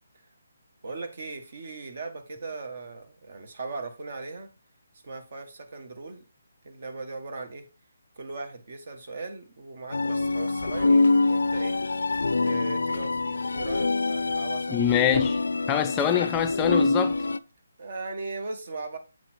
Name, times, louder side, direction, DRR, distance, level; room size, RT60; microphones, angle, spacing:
voice 1, 0.8-4.5 5.0-6.2 6.6-7.6 8.2-11.8 12.4-14.8 17.8-19.0, right 3 dB, 55° right, 1.6 m, -38 dB
sound 1, 9.9-17.4, left 3 dB, 85° left, 0.4 m, -25 dB
voice 2, 14.7-15.4 15.7-17.2, left 9 dB, 15° left, 0.4 m, -24 dB
7.8 x 4.1 x 4.5 m
hypercardioid pair, 160°, 0 cm